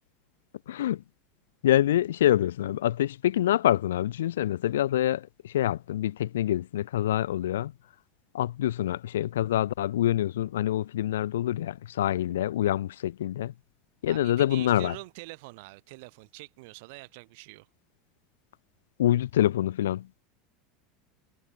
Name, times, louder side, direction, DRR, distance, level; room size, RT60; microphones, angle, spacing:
voice 1, 0.7-1.0 1.6-7.7 8.3-13.5 14.0-14.9 19.0-20.1, left 12 dB, 65° left, 0.7 m, -26 dB
voice 2, 14.1-17.7, right 26 dB, 55° right, 6.8 m, -45 dB
figure-of-eight pair, 75°, 0 cm